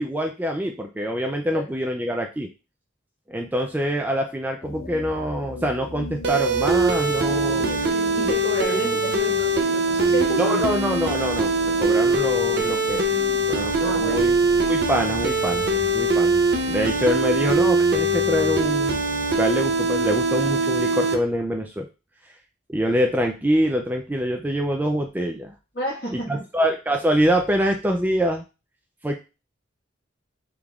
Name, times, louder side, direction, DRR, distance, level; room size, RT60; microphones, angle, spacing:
voice 1, 0.0-2.5 3.3-7.8 8.7-8.8 10.4-13.1 13.5-14.4 14.6-16.4 16.7-19.0 19.3-21.9 22.7-25.5 26.1-28.4 29.0-29.1, equal, 10° right, 3 dB, 0.3 m, -25 dB
sound 1, 4.6-16.1, left 1 dB, 85° left, 0.9 m, -39 dB
sound 2, 6.2-21.1, right 2 dB, 55° right, 0.6 m, -22 dB
voice 2, 8.1-10.7 13.8-14.3 17.0-17.1 25.7-26.4, equal, 50° left, -2 dB, 1.7 m, -30 dB
4.9 x 3.5 x 2.4 m, 0.30 s
head